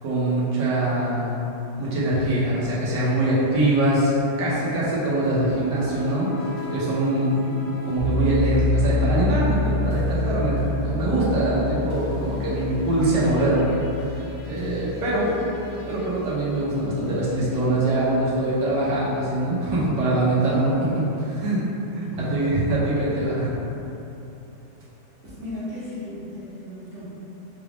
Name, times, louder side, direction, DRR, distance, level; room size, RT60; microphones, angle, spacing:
voice 1, 0.0-1.5 1.8-4.1 4.4-7.4 7.9-14.2 14.5-15.4 15.9-21.6 21.9-23.6, right 1 dB, 85° right, -8 dB, 1.7 m, -23 dB
sound 1, 5.2-17.6, left 1 dB, 65° left, 0.9 m, -41 dB
voice 2, 7.1-7.8 22.1-22.6 25.2-27.1, equal, 50° right, -11 dB, 1.2 m, -35 dB
sound 2, 8.0-16.8, left 2 dB, 85° left, 1.6 m, -27 dB
5.9 x 2.4 x 3.4 m, 3.0 s
omnidirectional pair, 1.8 m